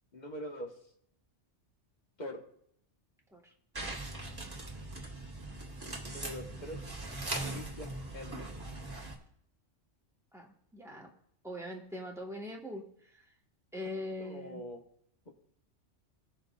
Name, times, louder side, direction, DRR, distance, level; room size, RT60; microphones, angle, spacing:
voice 1, 0.1-0.7 2.2-2.4 6.0-6.9 7.5-8.5 14.2-14.8, equal, 40° left, 0 dB, 1.4 m, -43 dB
sound 1, 3.7-9.2, right 2 dB, 20° right, 1.4 m, -40 dB
voice 2, 10.3-11.1 11.4-12.9 13.1-13.2 13.7-14.6, left 1 dB, 5° right, -2 dB, 1.3 m, -42 dB
18.0 x 6.3 x 2.4 m, 0.69 s
omnidirectional pair, 1.2 m